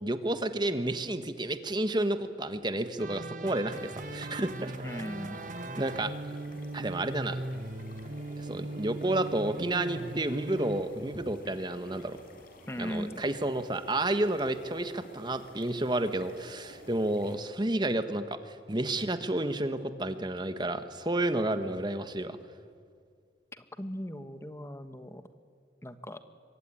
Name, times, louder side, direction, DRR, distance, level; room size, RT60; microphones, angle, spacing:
voice 1, 0.0-4.7 5.8-6.1 6.7-7.4 8.4-12.2 12.8-22.4, right 1 dB, 25° right, 9 dB, 1.4 m, -31 dB
sound 1, 3.0-10.8, right 2 dB, 45° right, 1.4 m, -39 dB
sound 2, 3.7-17.4, left 1 dB, 50° left, 4.8 m, -52 dB
voice 2, 4.8-5.4 12.7-13.2 23.5-25.2 25.8-26.2, equal, 15° left, 9 dB, 1.3 m, -38 dB
25.0 x 24.0 x 9.9 m, 2.2 s
head